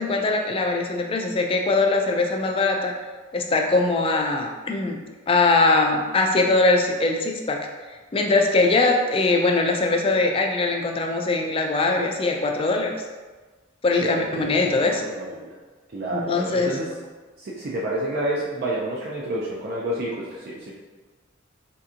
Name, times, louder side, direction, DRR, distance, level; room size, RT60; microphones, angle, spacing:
voice 1, 0.0-2.9 3.3-5.0 5.3-7.7 8.1-13.0 13.8-15.0 16.1-16.7, left 3 dB, 25° left, 2 dB, 0.3 m, -21 dB
voice 2, 14.0-15.5 15.9-16.9 17.4-20.7, right 1 dB, 50° right, -5 dB, 0.4 m, -29 dB
4.3 x 2.8 x 2.4 m, 1.3 s
head